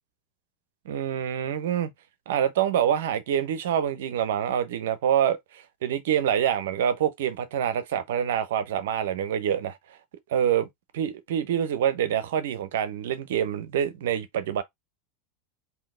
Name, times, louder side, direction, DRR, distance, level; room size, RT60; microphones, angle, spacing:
voice 1, 0.8-1.9 2.3-9.8 10.3-10.7 10.9-14.6, right 9 dB, 70° right, 0.7 m, -26 dB
3.8 x 2.8 x 3.7 m
hypercardioid pair, 90°, 0 cm